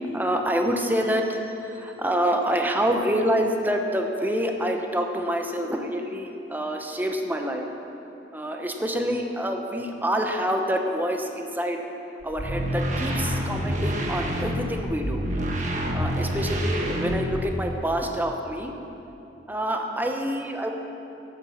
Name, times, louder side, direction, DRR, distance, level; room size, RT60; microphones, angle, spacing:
voice 1, 0.1-1.4 1.7-7.6 8.3-11.8 12.2-15.2 15.9-18.7 19.5-20.7, equal, 10° right, 3 dB, 1.0 m, -27 dB
sound 1, 12.2-17.7, equal, 45° right, 1.4 m, -27 dB
12.0 x 8.3 x 7.2 m, 2.8 s
head